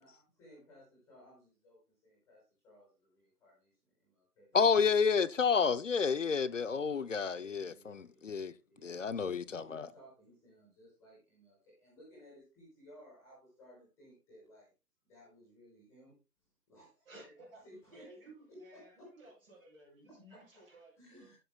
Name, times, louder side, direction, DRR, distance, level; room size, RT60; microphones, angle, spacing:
voice 1, 0.0-4.5 7.3-8.3 8.7-14.7 15.0-16.2 16.7-17.3 17.6-19.1 20.3-20.6 21.0-21.3, equal, 5° left, 6.1 m, -59 dB
voice 2, 4.5-8.5 8.8-9.9, left 5 dB, 55° left, 0.8 m, -30 dB
voice 3, 17.0-17.6 17.9-21.3, right 1 dB, 35° right, 8.0 m, -56 dB
19.5 x 7.8 x 2.3 m
figure-of-eight pair, 165°, 46 cm